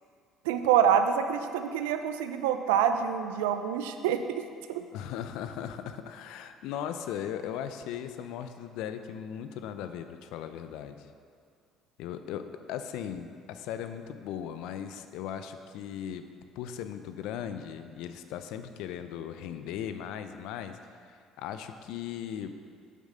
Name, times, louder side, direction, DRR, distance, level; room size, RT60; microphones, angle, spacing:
voice 1, 0.5-4.4 4.7-4.8, right 8 dB, 85° right, 8 dB, 0.5 m, -26 dB
voice 2, 4.9-11.1 12.0-16.2 16.6-22.5, left 9 dB, 75° left, 9 dB, 0.5 m, -38 dB
7.3 x 6.0 x 5.4 m, 2.2 s
hypercardioid pair, 70°, 0 cm